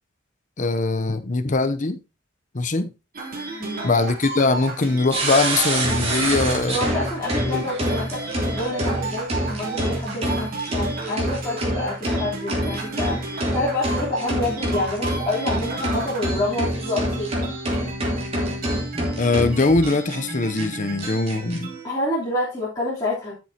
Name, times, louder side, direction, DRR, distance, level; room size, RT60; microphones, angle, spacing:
voice 1, 0.6-2.0 2.5-2.9 3.8-6.8 7.4-7.6 19.2-21.7, left 3 dB, 40° left, 0.8 m, -22 dB
sound 1, 3.1-21.8, right 3 dB, 50° right, 3.3 m, -33 dB
voice 2, 3.6-3.9 6.7-17.5 21.8-23.3, left 2 dB, 20° left, 3.5 m, -28 dB
sound 2, 5.1-20.2 20.6-20.7 21.0-21.6, right 1 dB, 30° right, 3.4 m, -26 dB
13.0 x 7.3 x 2.9 m
head